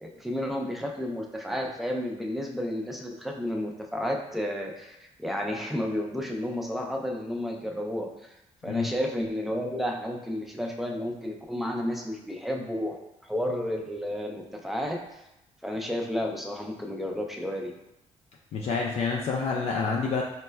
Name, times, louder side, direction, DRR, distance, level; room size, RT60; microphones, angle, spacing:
voice 1, 0.0-8.3 8.6-13.0 13.2-15.2 15.6-17.7, left 1 dB, ahead, 1 dB, 0.4 m, -32 dB
voice 2, 18.5-20.2, left 5 dB, 60° left, -2 dB, 0.4 m, -28 dB
4.1 x 2.2 x 2.2 m, 0.90 s
cardioid pair, 105°, 12 cm